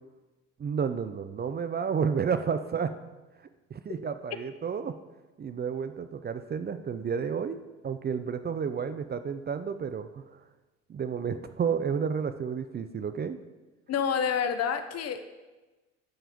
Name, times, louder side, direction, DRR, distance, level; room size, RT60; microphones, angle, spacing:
voice 1, 0.6-3.0 3.7-5.0 5.4-7.6 7.8-10.4 10.9-13.4, right 6 dB, 25° right, 11 dB, 0.6 m, -31 dB
voice 2, 13.9-15.3, left 7 dB, 45° left, 9 dB, 1.0 m, -28 dB
12.5 x 5.6 x 5.1 m, 1.2 s
hypercardioid pair, 65°, 36 cm